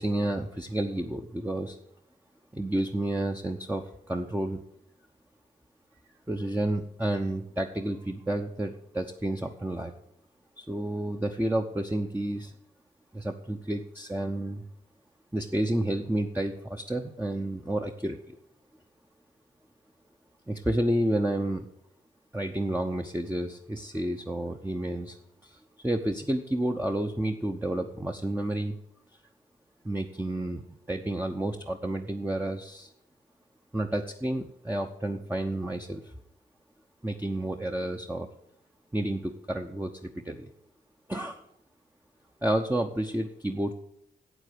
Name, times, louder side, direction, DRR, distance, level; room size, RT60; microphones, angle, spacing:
voice 1, 0.0-1.8 2.5-4.6 6.3-9.9 10.6-12.5 13.1-14.6 15.3-18.4 20.5-21.7 22.3-25.2 25.4-28.7 29.8-30.6 30.9-32.9 33.7-36.1 37.0-38.3 38.9-40.5 41.1-41.4 42.4-43.7, right 1 dB, 10° right, 3 dB, 0.9 m, -30 dB
8.4 x 8.0 x 8.0 m, 0.76 s
cardioid pair, 60°, 20 cm